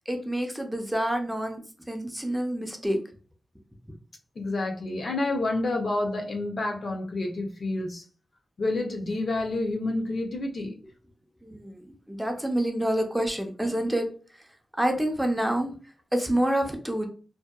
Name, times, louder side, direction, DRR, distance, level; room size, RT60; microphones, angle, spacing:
voice 1, 0.1-1.6 1.9-3.0 11.4-14.1 14.8-15.7 16.1-17.1, right 1 dB, 5° right, 4 dB, 0.4 m, -27 dB
voice 2, 4.4-8.0 8.6-10.7, left 2 dB, 55° left, 2 dB, 0.6 m, -29 dB
2.6 x 2.2 x 2.3 m, 0.37 s
wide cardioid pair, 90°, 0 cm